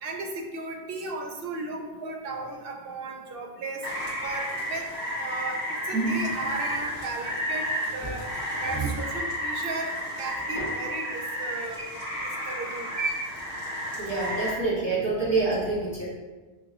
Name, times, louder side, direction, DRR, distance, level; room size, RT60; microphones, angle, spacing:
voice 1, 0.0-3.8 4.2-4.9 5.2-7.7 7.9-8.3 8.6-11.8 12.5-12.9, right 3 dB, 65° right, 2 dB, 0.8 m, -35 dB
Rain, 3.8-14.5, equal, 40° right, 1.3 m, -32 dB
sound 1, 5.9-7.2 8.0-9.0 10.5-10.7 11.8-12.2 12.9-13.3, right 3 dB, 10° left, 1.3 m, -31 dB
voice 2, 14.0-16.0, right 3 dB, 25° right, -8 dB, 1.4 m, -26 dB
5.9 x 2.9 x 2.5 m, 1.3 s
omnidirectional pair, 1.0 m